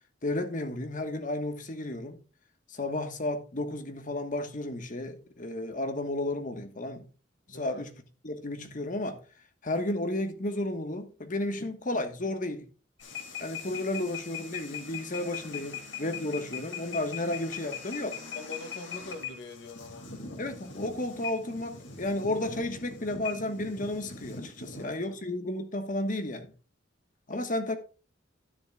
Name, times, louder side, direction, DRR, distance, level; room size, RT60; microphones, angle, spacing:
voice 1, 0.2-2.2 2.7-7.1 7.5-7.9 8.2-9.2 9.6-12.7 13.4-18.2 20.4-26.5 27.3-27.8, left 1 dB, 45° left, 1.4 m, -33 dB
voice 2, 7.5-7.9 18.3-20.1 24.6-25.2, left 3 dB, 70° left, 2.0 m, -43 dB
sound 1, 13.0-24.9, left 6 dB, 85° left, 2.5 m, -41 dB
12.5 x 10.0 x 2.4 m
head